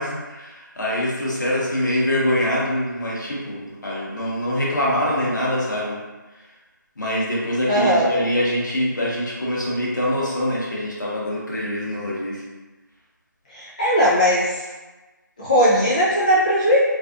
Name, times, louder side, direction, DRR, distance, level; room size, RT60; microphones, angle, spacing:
voice 1, 0.0-6.0 6.3-6.5 7.0-12.4, left 1 dB, 65° left, -5 dB, 0.9 m, -24 dB
voice 2, 7.7-8.0 13.5-14.6 15.4-16.8, equal, 25° left, -8 dB, 0.3 m, -18 dB
2.5 x 2.3 x 2.4 m, 1.2 s
figure-of-eight pair, 160°, 11 cm